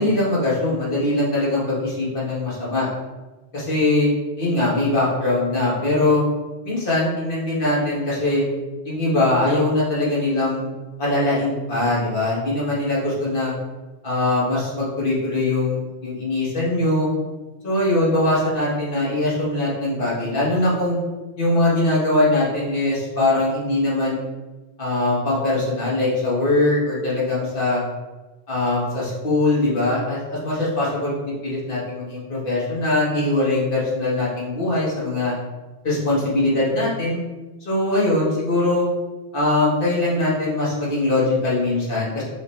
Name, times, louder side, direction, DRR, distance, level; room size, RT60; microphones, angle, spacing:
voice 1, 0.0-2.9 3.5-4.1 4.4-6.2 6.6-8.4 8.8-10.7 11.0-13.5 14.0-17.1 17.6-21.0 21.4-24.2 24.8-27.8 28.5-35.3 35.8-37.2 37.6-38.9 39.3-42.2, left 2 dB, 60° left, -7 dB, 1.6 m, -21 dB
5.0 x 2.8 x 3.2 m, 1.2 s
omnidirectional pair, 1.0 m